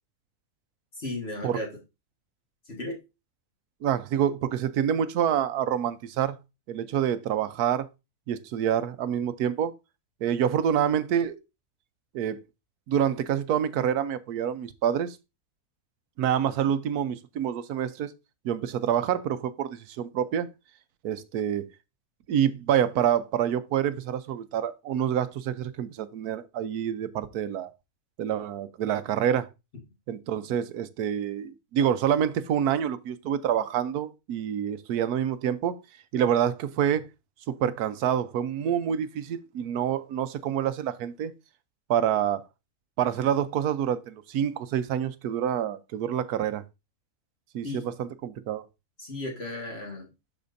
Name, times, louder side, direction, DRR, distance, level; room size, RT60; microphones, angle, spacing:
voice 1, 1.0-1.7 2.7-3.0 47.6-47.8 49.0-50.1, left 1 dB, 45° left, 1.9 m, -35 dB
voice 2, 3.8-6.4 6.7-7.9 8.3-9.7 10.2-11.4 12.1-12.4 12.9-15.2 16.2-18.1 18.4-20.5 21.0-21.7 22.3-27.7 28.2-29.5 30.1-35.8 36.1-37.1 37.5-41.3 41.9-42.4 43.0-46.6 47.5-48.6, right 9 dB, 85° right, 1.2 m, -27 dB
12.0 x 4.3 x 2.6 m
omnidirectional pair, 1.6 m